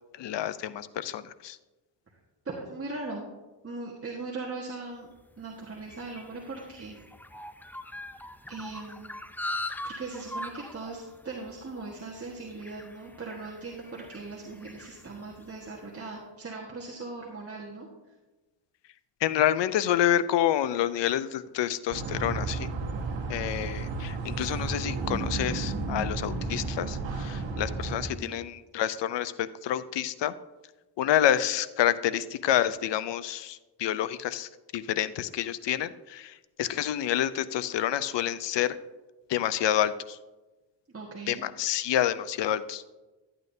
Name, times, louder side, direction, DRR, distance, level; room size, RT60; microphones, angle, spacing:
voice 1, 0.2-1.6 19.2-22.7 23.3-30.3 31.0-38.8 39.3-40.2 41.3-42.8, left 11 dB, 70° left, 15 dB, 0.6 m, -28 dB
voice 2, 2.4-3.3 3.6-7.0 8.5-9.1 9.8-17.9 28.1-28.4 40.9-41.4, right 3 dB, 30° right, -3 dB, 1.5 m, -39 dB
sound 1, 5.2-15.8, left 1 dB, 5° left, 0.4 m, -42 dB
sound 2, 21.9-28.1, right 3 dB, 85° right, 1.3 m, -32 dB
12.0 x 8.8 x 2.7 m, 1.2 s
cardioid pair, 75°, 44 cm